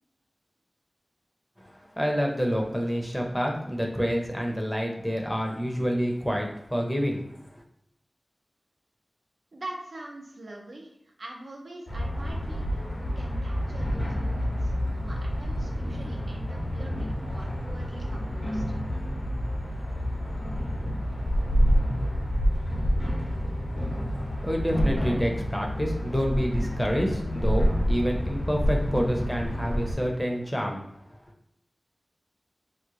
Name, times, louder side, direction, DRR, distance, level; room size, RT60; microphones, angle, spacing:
voice 1, 1.6-7.6 24.1-24.2 24.4-30.8 31.1-31.2, equal, 5° left, 0 dB, 0.7 m, -28 dB
voice 2, 9.5-14.7 15.0-18.8, right 1 dB, 70° right, -1 dB, 0.6 m, -44 dB
sound 1, 11.9-29.9, equal, 65° left, 1.0 m, -28 dB
3.1 x 2.0 x 3.7 m, 0.75 s
wide cardioid pair, 60°, 0 cm